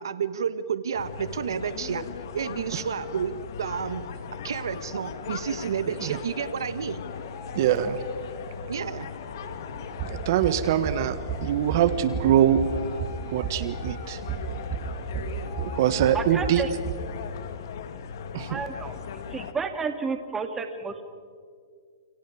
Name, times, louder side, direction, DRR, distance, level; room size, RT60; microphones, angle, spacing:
voice 1, 0.0-2.0 2.3-3.3 3.6-4.0 4.3-7.1 8.7-9.1, right 7 dB, 80° right, 13 dB, 1.3 m, -30 dB
sound 1, 0.9-19.5, left 7 dB, 60° left, 2.0 m, -38 dB
sound 2, 5.3-16.7, left 2 dB, 35° left, 5.1 m, -46 dB
voice 2, 5.9-6.2 7.5-8.0 10.1-12.6 13.3-14.2 15.6-16.6 18.3-18.6, right 10 dB, 55° right, 12 dB, 1.5 m, -24 dB
sound 3, 9.7-17.0, right 7 dB, 35° right, 2.9 m, -34 dB
voice 3, 16.1-16.7 18.5-18.9 19.3-21.0, right 5 dB, 15° right, 6 dB, 2.4 m, -31 dB
29.5 x 29.0 x 5.0 m, 2.1 s
hypercardioid pair, 140°, 2 cm